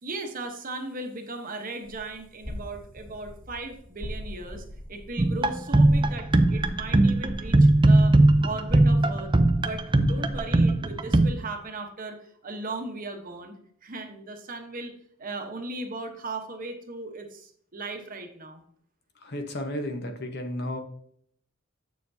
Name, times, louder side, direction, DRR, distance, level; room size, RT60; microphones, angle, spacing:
voice 1, 0.0-9.3 9.6-12.2 12.4-14.9 15.2-18.6, right 2 dB, 40° right, 5 dB, 1.0 m, -37 dB
sound 1, 1.8-11.4, equal, 15° left, 1.3 m, -40 dB
sound 2, 5.2-11.3, right 2 dB, 25° right, 0.5 m, -20 dB
voice 2, 19.2-20.8, left 1 dB, 55° left, 6 dB, 1.1 m, -33 dB
8.0 x 6.8 x 2.7 m, 0.64 s
head